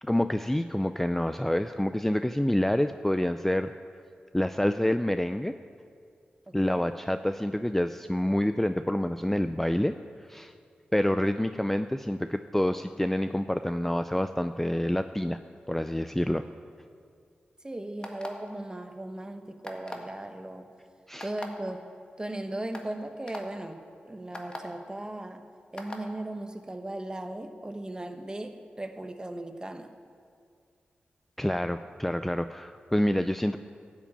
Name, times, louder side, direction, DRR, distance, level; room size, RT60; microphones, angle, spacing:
voice 1, 0.0-3.7 4.3-5.5 6.5-9.9 10.3-10.5 10.9-15.4 15.7-16.5 21.1-21.3 31.4-33.6, left 1 dB, 10° left, 10 dB, 0.4 m, -27 dB
voice 2, 6.5-6.9 17.6-20.7 21.2-21.9 22.2-25.4 25.7-29.9, right 1 dB, 20° right, 7 dB, 1.1 m, -37 dB
sound 1, 18.0-18.5 19.6-20.1 21.2-21.5 22.2-22.3 22.7-22.9 23.3-23.4 24.3-24.6 25.8-26.0, left 2 dB, 25° left, 1.7 m, -39 dB
12.5 x 7.4 x 8.6 m, 2.2 s
cardioid pair, 60°, 3 cm